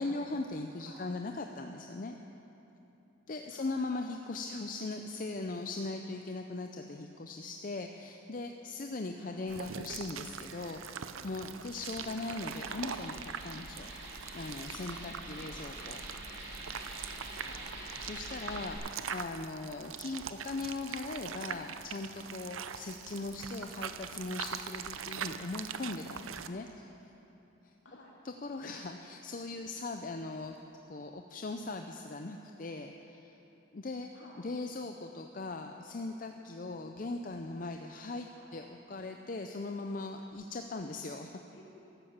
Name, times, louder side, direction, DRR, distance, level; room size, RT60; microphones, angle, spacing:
voice 1, 0.0-2.1 3.3-13.9 14.3-16.0 18.0-26.9 28.2-30.6 30.9-33.3 33.7-34.1 34.4-38.3 38.5-41.3, left 3 dB, 40° left, 5 dB, 0.5 m, -39 dB
sound 1, 9.5-26.5, right 7 dB, 85° right, 0.6 m, -43 dB
sound 2, 11.6-18.7, right 1 dB, 60° right, 2.5 m, -46 dB
voice 2, 17.4-17.7 23.1-23.3 27.8-28.2 34.1-34.4 38.4-38.6 41.5-41.6, left 1 dB, 65° left, -4 dB, 3.3 m, -55 dB
14.0 x 11.5 x 7.2 m, 3.0 s
head